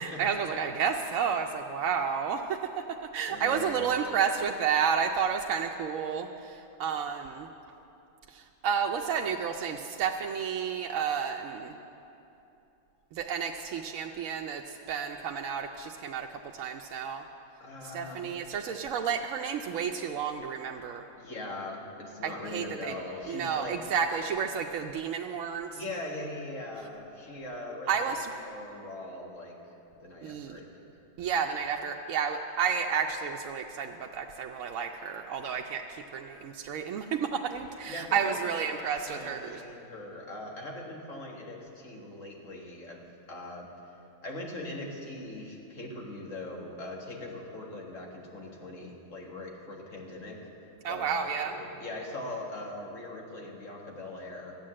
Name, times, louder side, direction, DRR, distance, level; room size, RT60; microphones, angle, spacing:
voice 1, 0.0-2.6 3.1-7.5 8.3-11.8 13.1-17.2 17.8-21.0 22.2-22.9 23.3-25.7 27.9-28.3 30.2-30.6 31.2-39.6 50.8-51.5, right 7 dB, 80° right, 2 dB, 1.0 m, -31 dB
voice 2, 3.3-3.9 17.6-18.3 21.2-23.8 25.7-28.1 28.4-29.6 30.0-30.9 37.9-43.7 44.2-50.4 50.9-54.6, left 2 dB, 75° left, -1 dB, 2.1 m, -41 dB
13.0 x 9.2 x 7.5 m, 2.8 s
omnidirectional pair, 1.4 m